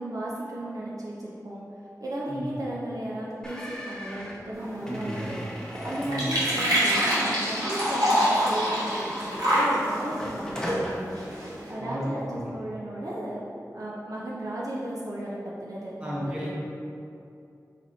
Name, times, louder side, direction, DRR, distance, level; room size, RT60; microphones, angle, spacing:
voice 1, 0.0-1.6 2.0-5.4 5.8-13.4 13.7-16.6, right 1 dB, 60° right, -6 dB, 0.7 m, -35 dB
sound 1, 3.4-9.7 10.1-10.9, equal, 10° left, 0.7 m, -41 dB
sound 2, 4.5-11.7, equal, 85° right, 1.2 m, -27 dB
voice 2, 4.8-5.3 6.0-6.3 11.8-12.5 16.0-16.6, equal, 15° right, -7 dB, 1.3 m, -33 dB
4.2 x 3.2 x 4.0 m, 2.5 s
wide cardioid pair, 55°, 7 cm